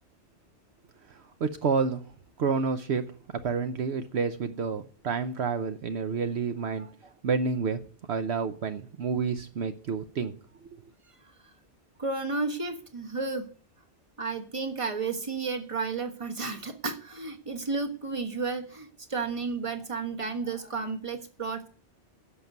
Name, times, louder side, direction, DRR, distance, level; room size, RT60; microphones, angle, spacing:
voice 1, 1.1-2.0 2.4-3.0 3.3-6.9 7.2-7.8 8.1-10.3, right 5 dB, 70° right, 9 dB, 1.1 m, -29 dB
voice 2, 12.0-13.5 14.2-21.7, right 4 dB, 30° right, 7 dB, 1.5 m, -32 dB
11.0 x 6.7 x 9.3 m, 0.42 s
omnidirectional pair, 1.2 m